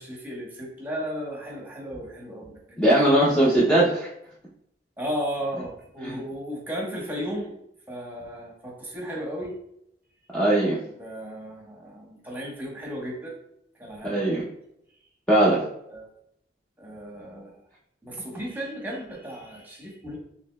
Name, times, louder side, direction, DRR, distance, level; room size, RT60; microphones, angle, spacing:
voice 1, 0.0-3.6 5.0-7.5 7.9-9.6 11.0-13.4 13.8-14.3 15.9-16.1 16.8-17.6 18.0-20.2, equal, 10° right, -2 dB, 1.1 m, -35 dB
voice 2, 2.8-4.1 6.0-6.2 10.3-10.8 14.0-14.4 15.3-15.6, right 1 dB, 5° left, -7 dB, 0.6 m, -20 dB
6.2 x 2.9 x 2.2 m, 0.76 s
head